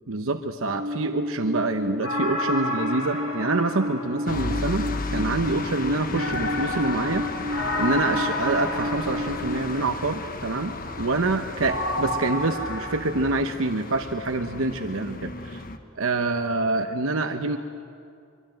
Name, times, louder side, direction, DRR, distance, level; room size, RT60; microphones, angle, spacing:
voice 1, 0.1-4.9 5.1-15.6 16.0-17.6, right 2 dB, 80° right, 6 dB, 1.0 m, -26 dB
Alarm, 0.6-9.6, left 1 dB, 60° right, 2.7 m, -32 dB
sound 1, 2.0-4.8 6.1-10.0 11.6-13.0, left 1 dB, 65° left, 4.8 m, -30 dB
sound 2, 4.3-15.8, left 2 dB, 45° left, 1.3 m, -34 dB
24.0 x 23.5 x 9.1 m, 2.4 s
head